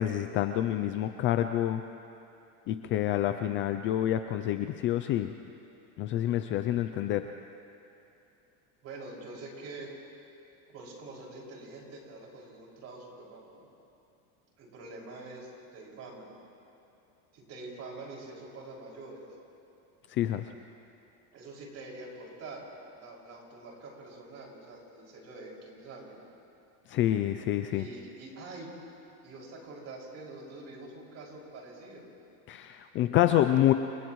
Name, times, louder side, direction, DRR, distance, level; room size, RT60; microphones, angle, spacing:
voice 1, 0.0-1.8 2.7-5.3 6.0-7.3 20.1-20.5 26.9-27.9 32.5-33.7, left 12 dB, 30° left, 9 dB, 0.4 m, -27 dB
voice 2, 8.8-9.9 10.7-13.7 14.6-16.3 17.3-19.3 21.3-22.6 22.9-26.2 27.7-28.7 29.2-32.1, right 2 dB, 35° right, -2 dB, 5.8 m, -45 dB
30.0 x 29.0 x 3.1 m, 2.8 s
supercardioid pair, 150°, 43 cm